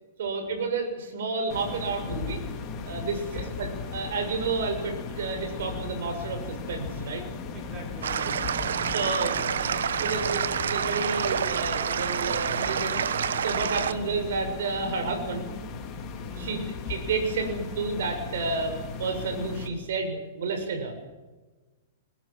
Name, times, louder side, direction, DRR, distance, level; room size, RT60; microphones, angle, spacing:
voice 1, 0.2-2.4 2.8-7.2 8.9-13.0 13.4-15.5 16.4-16.6 16.9-20.9, right 4 dB, 70° right, 5 dB, 7.0 m, -31 dB
sound 1, 1.5-19.7, left 5 dB, 25° left, 3.9 m, -37 dB
voice 2, 3.1-3.5 7.5-9.0 13.7-14.1 16.3-16.7, right 2 dB, 30° right, 1 dB, 6.2 m, -44 dB
sound 2, 8.0-13.9, right 8 dB, 90° right, 1.3 m, -28 dB
22.5 x 20.5 x 7.6 m, 1.2 s
hypercardioid pair, 155°, 0 cm